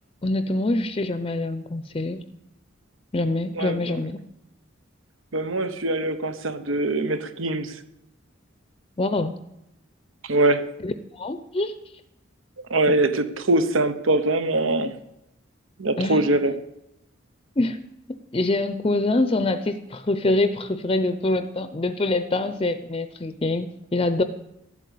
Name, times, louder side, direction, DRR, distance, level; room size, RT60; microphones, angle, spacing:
voice 1, 0.2-2.2 3.1-4.2 9.0-9.4 10.8-11.7 12.9-13.0 16.0-16.3 17.6-17.8 18.3-24.2, left 2 dB, 30° left, 11 dB, 0.6 m, -25 dB
voice 2, 5.3-7.8 10.2-10.7 12.7-15.0 15.8-16.5, right 2 dB, 85° right, 11 dB, 1.1 m, -23 dB
13.0 x 8.5 x 8.3 m, 0.84 s
head